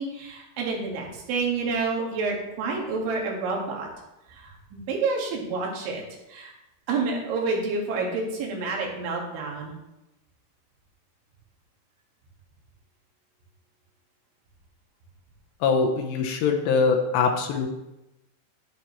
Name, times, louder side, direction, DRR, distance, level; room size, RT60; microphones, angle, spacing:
voice 1, 0.0-3.9 4.3-4.4 4.7-6.0 6.3-6.5 6.9-9.7, right 4 dB, 85° right, -1 dB, 4.4 m, -28 dB
voice 2, 15.6-17.7, left 5 dB, 75° left, 3 dB, 3.0 m, -23 dB
10.5 x 10.5 x 3.2 m, 0.93 s
omnidirectional pair, 5.2 m